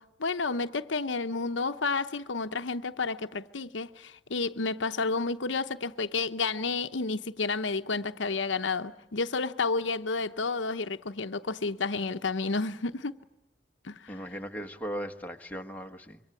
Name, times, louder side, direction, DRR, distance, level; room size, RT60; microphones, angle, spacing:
voice 1, 0.0-13.2 13.8-14.2, left 4 dB, 70° left, 0.9 m, -31 dB
voice 2, 14.1-16.2, equal, 10° left, 1.4 m, -38 dB
26.0 x 23.5 x 9.0 m
head